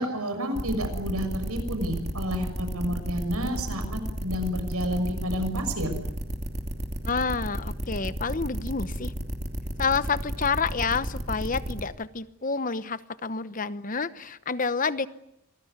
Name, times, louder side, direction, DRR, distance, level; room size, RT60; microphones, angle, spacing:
voice 1, 0.0-6.0, equal, 80° right, 7 dB, 6.5 m, -30 dB
sound 1, 0.6-11.8, equal, 30° right, 2.8 m, -32 dB
voice 2, 7.1-9.1 9.8-15.1, left 5 dB, 35° left, 14 dB, 0.9 m, -29 dB
26.5 x 20.0 x 9.6 m, 0.82 s
head